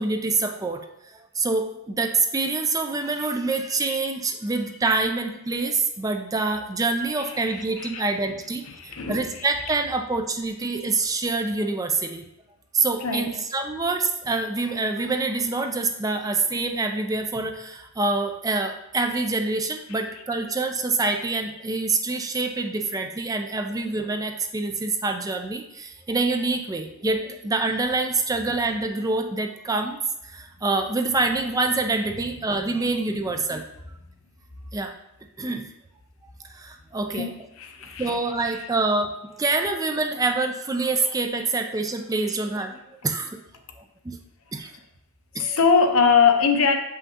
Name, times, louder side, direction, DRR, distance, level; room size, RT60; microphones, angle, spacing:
voice 1, 0.0-12.2 12.7-30.0 30.2-33.7 34.7-34.9 35.4-35.7 36.4-37.3 38.0-43.4 43.8-44.2 44.5-44.7 45.3-45.6, right 3 dB, 15° right, 6 dB, 0.3 m, -26 dB
voice 2, 7.2-9.9 13.0-13.4 19.9-20.5 23.6-23.8 27.1-27.7 31.0-31.2 32.2-33.4 37.1-38.7 41.3-41.4 42.2-42.6 44.5-44.8 45.3-46.8, left 5 dB, 65° left, 5 dB, 0.7 m, -26 dB
7.2 x 5.6 x 2.8 m, 0.87 s
head